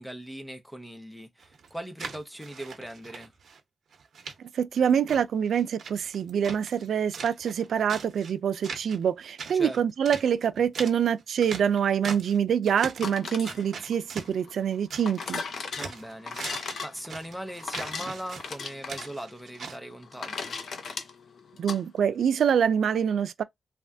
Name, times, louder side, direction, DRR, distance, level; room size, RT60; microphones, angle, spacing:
voice 1, 0.0-3.3 9.5-9.8 15.7-20.6, equal, ahead, 0.5 m, -40 dB
sound 1, 1.4-3.6 3.9-4.3 4.7-6.9 7.1-8.3 8.6-9.1 9.4-12.4 12.6-13.1 13.5-15.3 15.6-19.8, right 5 dB, 70° right, 0.8 m, -41 dB
voice 2, 4.5-15.4 21.6-23.4, right 8 dB, 90° right, 0.3 m, -25 dB
sound 2, 12.9-21.8, left 5 dB, 65° left, 0.6 m, -38 dB
3.3 x 2.2 x 2.6 m
wide cardioid pair, 175°, 0 cm